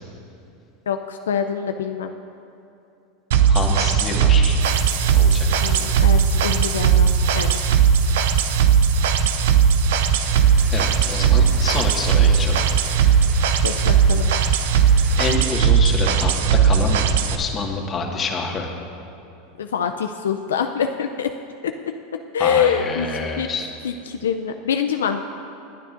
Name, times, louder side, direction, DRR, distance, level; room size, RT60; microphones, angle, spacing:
voice 1, 0.9-2.1 5.6-7.6 13.6-14.3 19.6-21.3 21.6-21.7 22.3-23.1 23.4-23.5 23.8-25.2, left 7 dB, 85° left, 6 dB, 0.4 m, -25 dB
sound 1, 3.3-17.4, right 7 dB, 75° right, 0.6 m, -18 dB
voice 2, 3.5-4.6 5.1-5.8 10.7-12.6 15.2-16.3 16.6-18.7 22.4-23.7, left 3 dB, 30° left, 1 dB, 1.7 m, -27 dB
sound 2, 4.6-15.2, right 6 dB, 50° right, 2.1 m, -43 dB
sound 3, 10.2-15.4, left 2 dB, ahead, 2.2 m, -40 dB
26.5 x 9.0 x 2.6 m, 2.7 s
hypercardioid pair, 95°, 0 cm